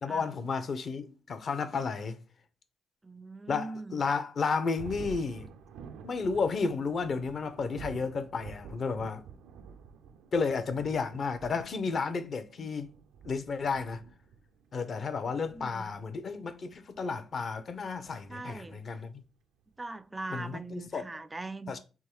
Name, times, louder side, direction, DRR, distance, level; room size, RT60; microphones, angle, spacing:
voice 1, 0.0-2.2 3.5-5.5 6.0-9.2 10.3-12.9 13.2-14.0 14.7-19.2 20.3-21.1 21.7-21.8, left 4 dB, 50° left, 0.7 m, -32 dB
voice 2, 3.0-4.0 12.6-12.7 15.5-15.9 18.3-18.8 19.8-21.7, right 2 dB, 20° right, 0.4 m, -41 dB
Thunder, 4.8-18.7, right 6 dB, 90° right, 0.4 m, -49 dB
3.6 x 3.1 x 4.5 m
cardioid pair, 90°, 0 cm